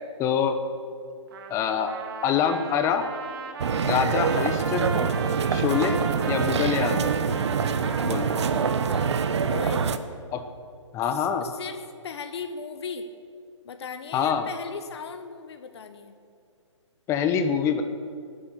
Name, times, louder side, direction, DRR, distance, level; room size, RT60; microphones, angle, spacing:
voice 1, 0.2-0.6 1.5-1.9 2.2-3.0 3.8-5.1 5.5-6.0 6.3-7.1 8.0-8.3 10.3-10.5 10.9-11.5 14.1-14.5 17.1-17.8, left 7 dB, 20° left, 8 dB, 1.0 m, -25 dB
Trumpet, 1.3-9.7, right 5 dB, 45° right, 1.6 m, -37 dB
sound 1, 3.6-10.0, right 6 dB, 60° right, 1.0 m, -25 dB
voice 2, 9.5-9.9 11.0-13.1 13.6-16.2, left 5 dB, 60° left, 7 dB, 1.3 m, -37 dB
20.5 x 10.0 x 6.8 m, 2.3 s
hypercardioid pair, 145°, 16 cm